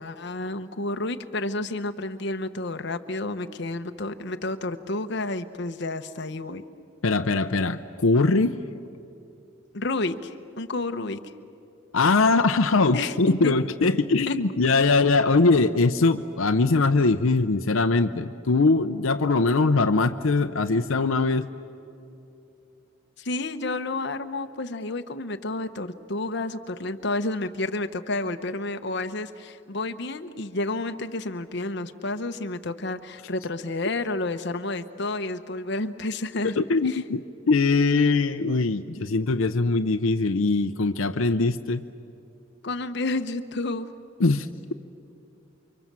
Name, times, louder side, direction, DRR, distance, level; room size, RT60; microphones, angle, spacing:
voice 1, 0.0-6.6 9.7-11.3 12.9-13.2 13.4-13.5 14.3-14.4 23.2-36.5 36.8-37.0 42.6-43.9, left 2 dB, 55° left, 8 dB, 1.0 m, -30 dB
voice 2, 7.0-8.6 11.9-21.5 36.6-41.8 44.2-44.7, left 3 dB, 85° left, 8 dB, 0.7 m, -22 dB
29.5 x 24.5 x 7.5 m, 2.7 s
head